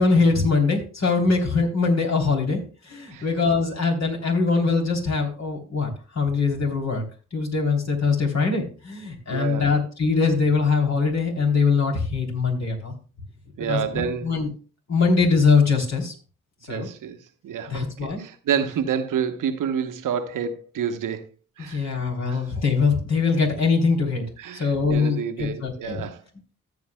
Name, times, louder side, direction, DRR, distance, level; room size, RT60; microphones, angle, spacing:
voice 1, 0.0-2.6 2.9-5.9 6.1-7.0 7.3-12.9 13.7-14.5 14.9-16.1 16.7-16.9 17.7-18.2 21.6-24.2 24.5-26.0, left 4 dB, 50° left, 3.3 m, -22 dB
voice 2, 9.3-9.7 13.6-14.4 16.6-17.2 17.4-21.3 21.6-21.9 22.3-22.4 24.4-26.2, right 7 dB, 60° right, 1.0 m, -28 dB
14.0 x 8.6 x 2.2 m
hypercardioid pair, 40°, 35 cm